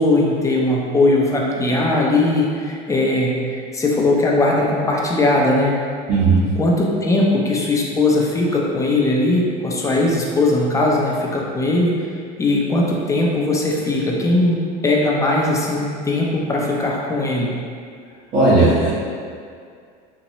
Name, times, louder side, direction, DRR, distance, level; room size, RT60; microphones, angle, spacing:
voice 1, 0.0-5.7 6.6-11.9 12.4-14.6 14.8-17.5, left 2 dB, 15° left, -2 dB, 0.5 m, -19 dB
voice 2, 6.1-6.5 18.3-18.9, right 2 dB, 45° right, -12 dB, 1.1 m, -15 dB
4.0 x 2.2 x 3.0 m, 2.2 s
supercardioid pair, 110°, 21 cm